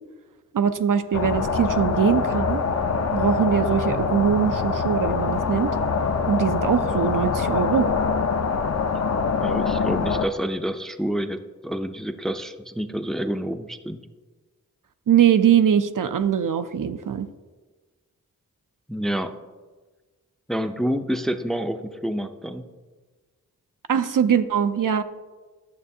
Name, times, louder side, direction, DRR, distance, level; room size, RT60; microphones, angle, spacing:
voice 1, 0.5-2.6 3.1-5.7 6.3-7.9 15.1-17.3 23.9-25.0, right 8 dB, 65° right, 10 dB, 0.5 m, -21 dB
sound 1, 1.1-10.3, left 5 dB, 45° left, 0.6 m, -24 dB
voice 2, 9.4-14.0 18.9-19.3 20.5-22.7, equal, ahead, 7 dB, 0.5 m, -28 dB
11.5 x 6.7 x 2.7 m, 1.3 s
cardioid pair, 45°, 35 cm